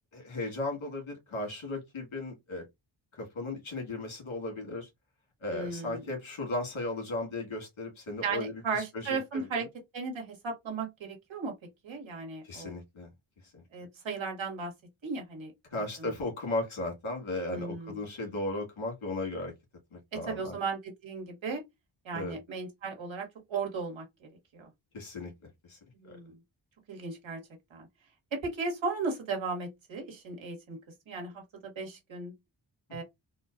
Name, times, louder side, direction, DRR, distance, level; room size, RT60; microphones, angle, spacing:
voice 1, 0.1-2.6 3.1-4.9 5.4-9.7 12.4-13.1 13.4-13.6 15.7-19.5 19.9-20.6 22.1-22.4 24.9-25.3 25.6-25.8 26.0-26.2, left 2 dB, 90° left, 1.7 m, -36 dB
voice 2, 5.5-6.0 8.2-9.7 9.9-11.5 11.8-12.7 13.7-14.7 15.0-15.5 16.0-16.1 17.5-18.1 20.1-21.6 22.0-24.0 24.5-24.7 26.0-26.3 26.9-27.4 27.7-27.9 28.3-30.8 31.1-31.4 31.7-32.3 32.9-33.0, right 4 dB, 75° right, 1.4 m, -35 dB
3.8 x 2.3 x 2.5 m
wide cardioid pair, 100°, 46 cm